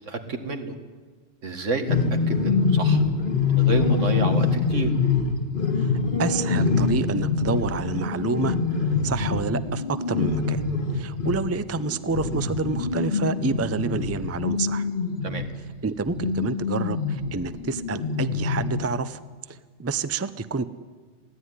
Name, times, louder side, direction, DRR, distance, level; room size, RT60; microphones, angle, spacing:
voice 1, 0.1-0.7 1.4-2.0 2.3-3.0 3.5-4.9 15.2-15.4, right 3 dB, 85° right, 6 dB, 2.2 m, -29 dB
sound 1, 1.9-15.6 16.0-18.9, left 4 dB, 45° left, 1.8 m, -25 dB
voice 2, 6.2-10.6 10.9-14.9 15.8-19.2 19.5-20.7, right 4 dB, 20° right, 13 dB, 0.4 m, -28 dB
22.0 x 16.0 x 9.8 m, 1.5 s
omnidirectional pair, 1.2 m